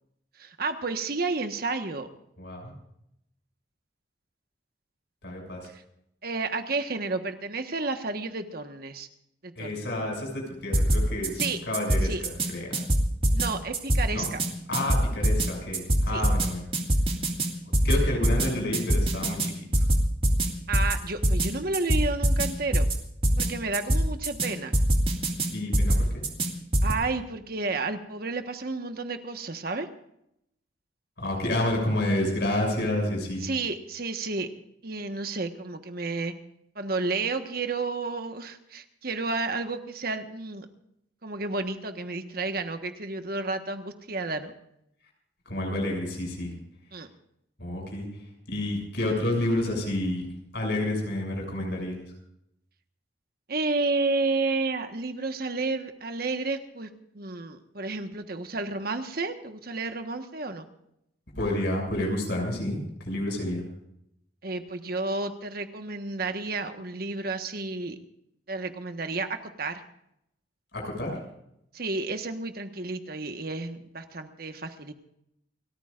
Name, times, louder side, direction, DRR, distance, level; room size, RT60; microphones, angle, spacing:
voice 1, 0.4-2.1 5.7-5.8 6.2-9.1 9.4-9.9 11.4-11.6 12.0-12.2 13.3-14.4 16.1-16.2 20.7-22.8 23.4-24.7 26.8-29.9 33.4-34.5 34.8-36.3 36.7-40.7 41.2-44.5 46.9-47.1 53.5-56.9 57.1-60.7 64.4-68.0 68.5-69.8 71.7-74.9, right 3 dB, 55° right, 7 dB, 1.4 m, -31 dB
voice 2, 2.4-2.7 5.2-5.7 9.6-12.8 14.1-14.3 14.7-16.6 17.8-19.9 25.5-26.2 31.2-33.5 45.5-46.5 47.6-48.1 48.5-50.3 50.5-52.0 61.4-63.6 70.7-71.1, left 1 dB, 65° left, 1 dB, 6.9 m, -29 dB
sound 1, 10.7-11.5 11.7-12.5 12.7-13.5 13.7-14.5 14.7-15.5 15.7-16.5 16.7-17.5 17.7-18.5 18.7-19.5 19.7-20.5 20.7-20.9 21.2-21.5 21.7-22.5 22.7-23.0 23.2-23.5 23.7-24.5 24.7-25.5 25.7-26.5 26.7-26.9, right 1 dB, 30° right, 2.3 m, -23 dB
29.5 x 14.0 x 2.5 m, 0.78 s
head